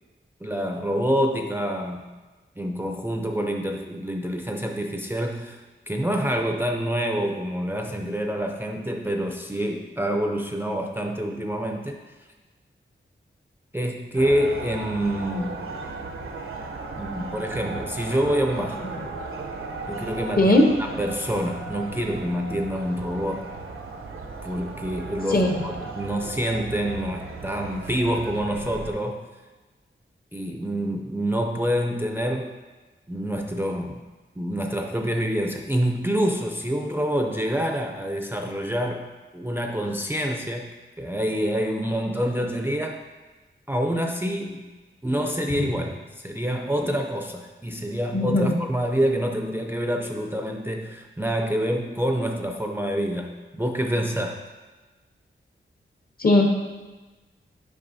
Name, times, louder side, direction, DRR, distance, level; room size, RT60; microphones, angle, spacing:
voice 1, 0.4-2.1 2.6-12.0 13.7-15.5 17.0-18.8 19.9-23.5 24.4-29.2 30.3-32.6 33.1-34.0 34.4-43.0 43.7-44.7 45.0-54.4, equal, 10° right, 2 dB, 0.4 m, -27 dB
sound 1, 14.1-28.9, right 3 dB, 80° right, 0.6 m, -36 dB
voice 2, 20.4-20.7 25.3-25.6 48.1-48.5 56.2-56.5, left 2 dB, 45° left, 2 dB, 0.9 m, -18 dB
8.7 x 5.1 x 2.7 m, 1.2 s
wide cardioid pair, 105°, 21 cm